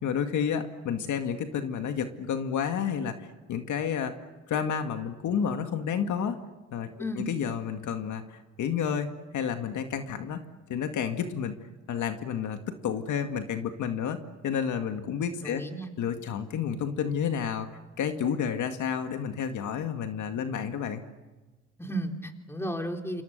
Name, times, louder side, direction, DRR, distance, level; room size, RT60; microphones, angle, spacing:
voice 1, 0.0-4.1 4.5-6.4 6.7-10.4 10.7-11.6 11.9-14.2 14.4-15.6 16.0-17.7 18.0-21.0, left 7 dB, 75° left, 7 dB, 2.2 m, -30 dB
voice 2, 15.4-15.9 21.8-23.2, equal, 10° left, 4 dB, 3.7 m, -33 dB
28.0 x 27.5 x 6.8 m, 1.2 s
cardioid pair, 90°, 30 cm